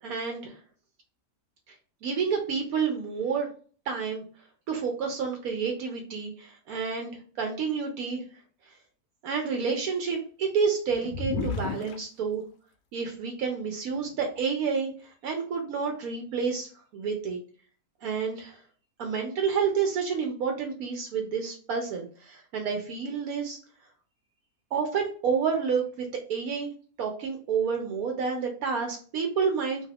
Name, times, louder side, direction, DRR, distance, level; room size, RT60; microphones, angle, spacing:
voice 1, 0.0-0.6 2.0-3.5 3.9-4.2 4.7-7.1 7.4-8.2 9.2-12.4 12.9-17.4 18.0-18.6 19.0-23.6 24.7-26.7 27.0-29.9, right 6 dB, 75° right, 3 dB, 1.1 m, -29 dB
sound 1, 10.9-12.0 13.1-13.2 14.0-14.5, left 4 dB, 70° left, 1.0 m, -33 dB
2.7 x 2.4 x 3.3 m, 0.41 s
omnidirectional pair, 1.6 m